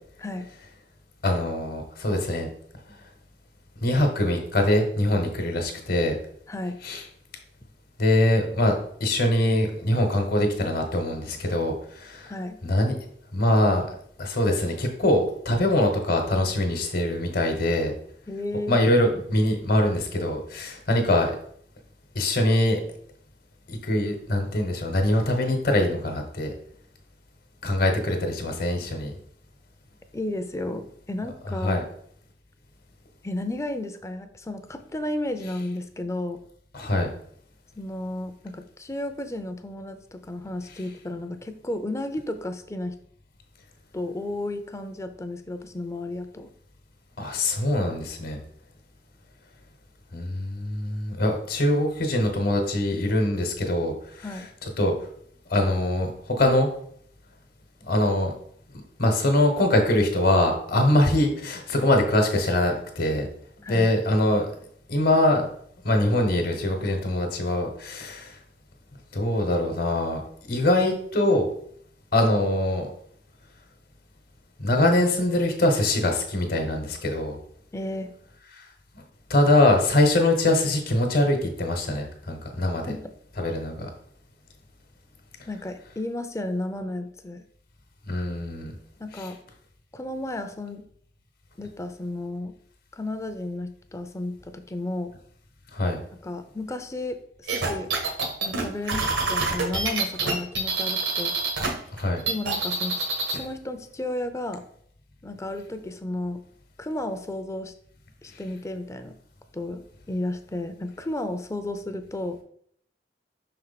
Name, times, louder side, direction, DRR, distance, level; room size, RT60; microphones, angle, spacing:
voice 1, 1.2-2.5 3.8-6.1 6.8-7.0 8.0-12.3 12.6-12.9 13.3-13.8 14.2-17.9 18.7-21.3 22.1-22.8 23.7-26.5 27.6-29.1 31.6-31.8 36.7-37.1 47.2-48.4 50.1-54.3 54.8-54.9 55.5-56.7 57.9-58.4 59.0-63.3 63.7-64.5 64.9-65.5 65.8-68.3 69.1-70.2 70.5-71.5 72.1-72.9 74.6-77.4 79.3-82.9 83.4-83.9 88.1-88.7 89.2-89.3 95.7-96.0 101.9-102.2, left 1 dB, 55° left, 4 dB, 1.1 m, -23 dB
voice 2, 12.3-12.6 18.3-18.8 30.1-31.8 33.2-36.4 37.8-42.9 43.9-46.5 54.2-54.5 63.6-63.9 77.7-78.1 82.9-83.1 85.5-87.4 89.0-89.4 89.9-90.8 91.6-92.5 92.9-95.1 96.2-97.9 98.4-101.3 102.3-104.6 105.2-106.4 106.8-107.7 108.2-109.2 109.5-109.8 110.1-112.4, left 1 dB, 15° left, 8 dB, 0.5 m, -33 dB
sound 1, 97.5-101.7 102.0-103.4, right 3 dB, 90° right, 1.6 m, -26 dB
6.0 x 4.4 x 4.0 m, 0.64 s
head